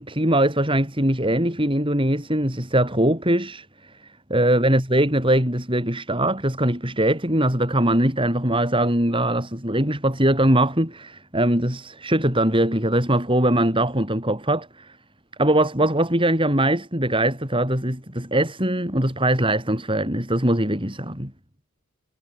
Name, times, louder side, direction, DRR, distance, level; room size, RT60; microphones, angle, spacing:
voice 1, 0.0-15.0 15.4-21.3, right 1 dB, 25° right, 7.0 m, -21 dB
head